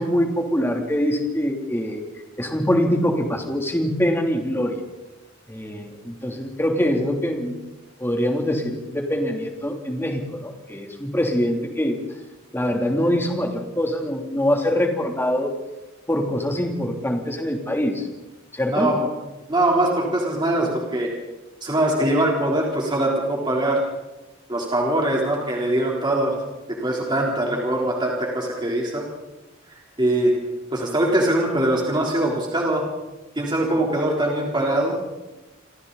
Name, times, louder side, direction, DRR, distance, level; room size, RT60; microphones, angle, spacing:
voice 1, 0.0-2.0 2.4-4.8 5.5-7.6 8.0-12.0 12.5-15.5 16.1-18.1 18.5-18.9, equal, 10° left, 2 dB, 3.2 m, -24 dB
voice 2, 18.7-19.1 19.5-21.1 21.6-23.8 24.5-26.4 26.7-29.0 30.0-30.3 30.7-32.8 33.4-35.0, right 1 dB, 25° right, -2 dB, 3.8 m, -22 dB
29.0 x 26.0 x 4.2 m, 1.1 s
head